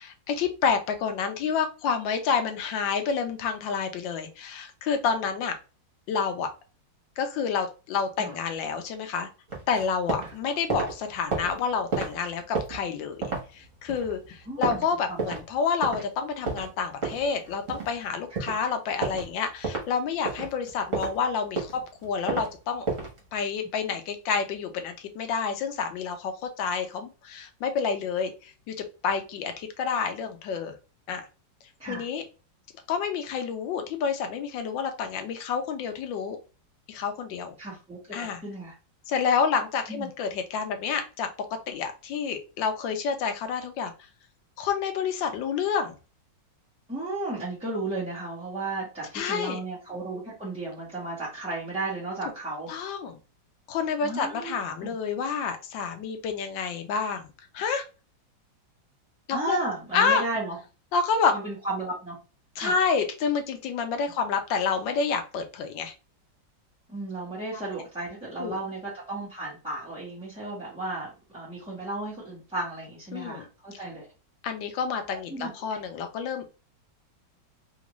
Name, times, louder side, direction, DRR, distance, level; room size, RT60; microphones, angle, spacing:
voice 1, 0.0-5.5 6.1-6.5 7.2-9.3 9.7-22.9 23.3-26.3 26.6-28.7 29.0-30.7 31.1-31.3 31.9-32.2 32.9-36.4 36.9-37.6 38.1-38.4 39.1-41.3 41.7-43.9 44.6-45.9 49.1-49.6 52.7-53.2 53.7-57.3 57.5-57.8 59.3-59.6 59.9-60.2 60.9-61.3 62.6-65.9 68.4-68.6 73.1-73.5 74.4-76.6, left 6 dB, 80° left, 6 dB, 1.4 m, -29 dB
sound 1, 9.5-10.3 10.6-15.5 15.8-16.0 16.4-18.0 18.3-18.6 19.0-19.3 19.6-19.9 20.3-21.2 21.5-22.5 22.9-23.2, right 3 dB, 45° right, 1.4 m, -31 dB
voice 2, 14.5-15.3 18.5-18.6 31.8-32.0 37.6-38.0 38.4-38.7 39.9-40.1 46.9-52.7 54.0-54.5 54.8-55.0 59.3-60.6 61.3-62.2 62.6-62.8 66.9-74.1 75.3-75.8, right 2 dB, 5° right, -7 dB, 1.0 m, -34 dB
3.5 x 2.5 x 3.0 m, 0.32 s
omnidirectional pair, 2.0 m